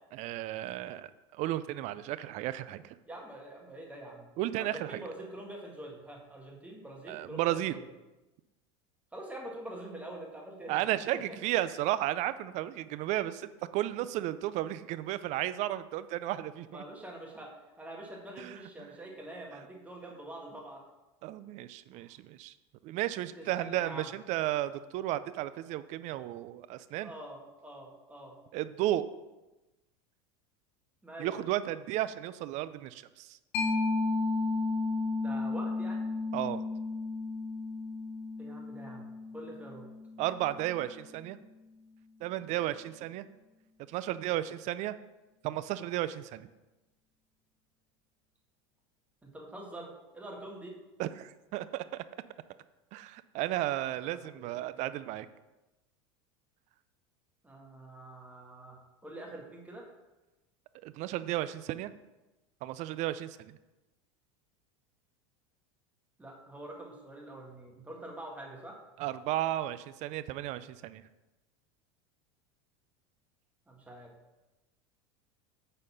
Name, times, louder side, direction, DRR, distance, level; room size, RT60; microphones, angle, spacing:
voice 1, 0.1-3.0 4.4-5.0 7.1-7.7 10.7-16.8 18.4-18.9 21.2-22.5 22.8-27.1 28.5-29.1 31.2-33.4 36.3-36.6 40.2-41.4 42.2-43.3 43.9-44.9 45.4-46.5 51.0-52.0 52.9-55.3 60.8-61.9 62.6-63.6 69.0-71.0, right 14 dB, 50° right, 14 dB, 0.4 m, -34 dB
voice 2, 3.1-4.3 4.6-7.8 9.1-10.9 11.3-11.4 16.7-17.5 17.8-20.8 23.4-24.0 27.0-28.3 31.0-31.4 35.2-36.1 38.4-39.1 39.3-39.9 49.2-50.7 53.9-54.7 57.4-58.8 59.0-59.9 66.2-68.8 73.7-74.1, right 1 dB, 10° right, -1 dB, 1.8 m, -45 dB
Mallet percussion, 33.5-40.8, left 3 dB, 55° left, 1.6 m, -33 dB
8.9 x 4.2 x 5.6 m, 1.1 s
supercardioid pair, 115°, 15 cm